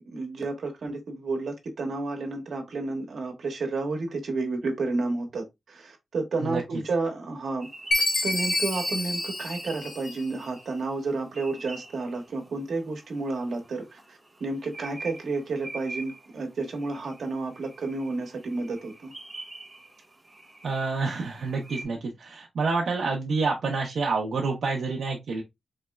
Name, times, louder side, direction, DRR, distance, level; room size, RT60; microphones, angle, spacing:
voice 1, 0.0-7.7 8.2-19.1, right 3 dB, 75° right, 1.0 m, -31 dB
sound 1, 7.6-21.8, right 2 dB, 15° right, 0.8 m, -45 dB
Chime, 7.9-10.5, left 2 dB, 60° left, 1.1 m, -28 dB
voice 2, 20.6-25.4, right 4 dB, 90° right, 0.6 m, -28 dB
4.0 x 3.1 x 2.2 m
wide cardioid pair, 175°, 0 cm